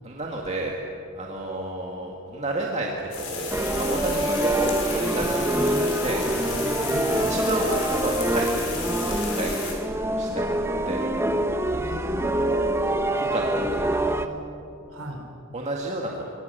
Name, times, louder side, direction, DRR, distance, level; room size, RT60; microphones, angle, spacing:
voice 1, 0.0-0.7 1.1-6.2 6.6-6.7 7.3-9.6 10.1-11.1 13.1-14.2 15.5-16.3, right 2 dB, 30° right, -1 dB, 2.1 m, -31 dB
sound 1, 3.1-9.7, left 6 dB, 90° left, 5.5 m, -34 dB
sound 2, 3.5-14.3, right 1 dB, 10° right, 1.0 m, -25 dB
voice 2, 6.8-7.1 11.7-13.2 14.9-15.3, equal, 80° right, 2 dB, 4.2 m, -38 dB
26.0 x 23.5 x 6.8 m, 2.8 s
head